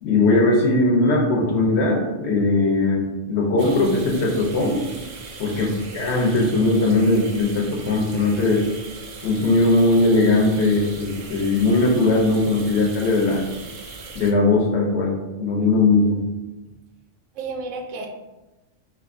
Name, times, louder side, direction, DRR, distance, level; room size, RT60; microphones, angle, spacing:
voice 1, 0.0-4.9 5.4-8.6 9.2-13.4 14.1-16.2, left 2 dB, 65° left, -1 dB, 1.0 m, -19 dB
sound 1, 3.6-14.3, right 3 dB, 60° right, 0.7 m, -39 dB
voice 2, 17.3-18.1, right 3 dB, 90° right, 3 dB, 1.0 m, -32 dB
2.9 x 2.4 x 3.5 m, 1.1 s
omnidirectional pair, 1.3 m